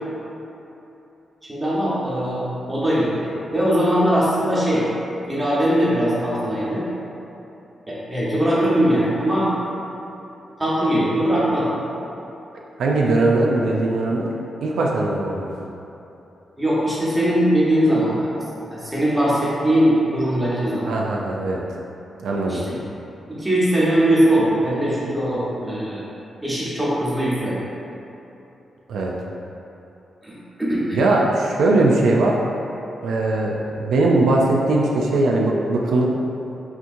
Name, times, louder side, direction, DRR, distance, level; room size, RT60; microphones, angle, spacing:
voice 1, 1.5-2.4 2.7-4.9 5.3-6.8 7.9-9.5 10.6-11.8 16.6-20.9 22.5-22.6 23.3-26.0 26.4-27.7 30.2-31.1, equal, 10° right, -8 dB, 0.9 m, -20 dB
voice 2, 12.8-14.3 14.6-15.6 20.9-21.6 22.2-22.6 28.9-29.1 30.9-32.4 33.0-36.1, right 2 dB, 80° right, -2 dB, 0.4 m, -20 dB
5.8 x 2.9 x 2.6 m, 3.0 s
wide cardioid pair, 175°, 0 cm